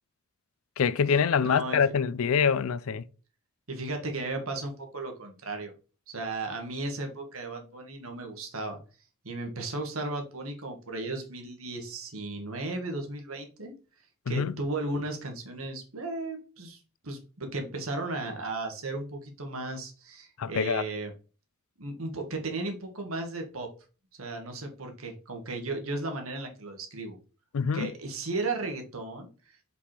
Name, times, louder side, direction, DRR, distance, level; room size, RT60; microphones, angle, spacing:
voice 1, 0.8-3.0 14.3-14.5 20.4-20.8 27.5-27.9, left 6 dB, 80° left, 0.4 m, -25 dB
voice 2, 1.4-1.9 3.7-5.7 6.1-8.8 9.2-13.7 14.3-16.8 17.0-21.1 21.8-23.7 24.1-27.2 27.7-29.6, right 2 dB, 85° right, 1.7 m, -35 dB
5.3 x 4.9 x 4.4 m
head